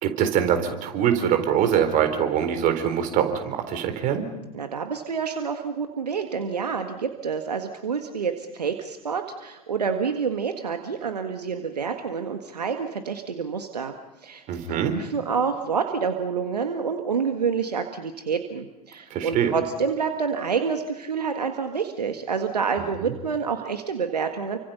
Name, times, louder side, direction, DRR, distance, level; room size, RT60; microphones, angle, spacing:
voice 1, 0.0-4.2 14.5-14.9 19.1-19.5 23.0-23.1, right 9 dB, 40° right, 7 dB, 4.1 m, -23 dB
voice 2, 4.5-14.0 14.2-24.6, right 6 dB, 80° right, 6 dB, 1.8 m, -28 dB
30.0 x 25.0 x 5.6 m, 0.98 s
figure-of-eight pair, 85°, 20 cm